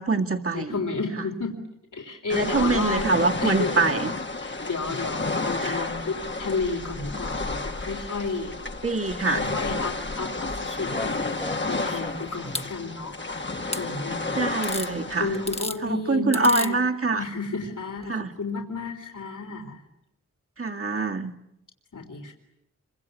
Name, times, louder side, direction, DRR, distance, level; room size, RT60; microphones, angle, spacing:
voice 1, 0.0-0.7 2.3-4.1 5.6-5.9 8.8-9.4 14.3-15.3 15.8-17.2 18.1-18.3 20.6-21.3, right 3 dB, 45° right, 2 dB, 2.1 m, -24 dB
voice 2, 0.5-1.6 1.9-3.9 4.4-8.6 9.3-13.4 13.8-14.4 15.1-16.8 17.2-19.8 21.9-22.3, left 3 dB, 70° left, 1 dB, 3.8 m, -32 dB
sound 1, 2.3-15.7, left 3 dB, 35° left, 1.5 m, -31 dB
sound 2, 10.7-12.7 13.7-13.8 14.6-14.9 15.3-15.8 16.3-16.7 18.0-18.1, left 1 dB, 20° left, 1.5 m, -34 dB
27.0 x 25.0 x 8.3 m, 0.84 s
cardioid pair, 50°, 32 cm